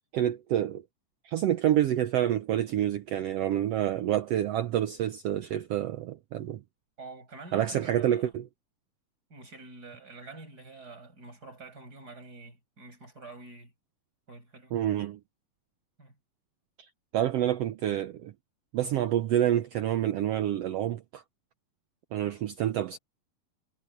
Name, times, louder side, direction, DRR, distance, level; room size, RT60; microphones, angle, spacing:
voice 1, 0.1-0.8 1.2-6.6 7.5-8.4 14.7-15.2 17.1-18.3 18.7-21.2 22.1-23.0, right 11 dB, 85° right, 1.3 m, -28 dB
voice 2, 7.0-8.3 9.3-13.7 14.3-14.8 16.0-16.1 22.1-22.5, right 3 dB, 25° right, 7.3 m, -47 dB
omnidirectional pair, 3.8 m